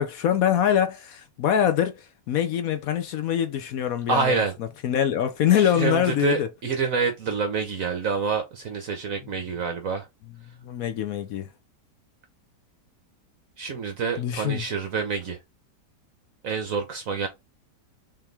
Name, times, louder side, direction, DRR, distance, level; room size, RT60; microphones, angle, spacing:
voice 1, 0.0-4.4 4.8-6.5 10.6-11.5 14.2-14.6, left 9 dB, 65° left, 0.9 m, -24 dB
voice 2, 4.1-4.5 5.6-10.1 13.6-15.4 16.4-17.3, right 5 dB, 55° right, 1.1 m, -27 dB
4.3 x 3.5 x 3.3 m
omnidirectional pair, 1.9 m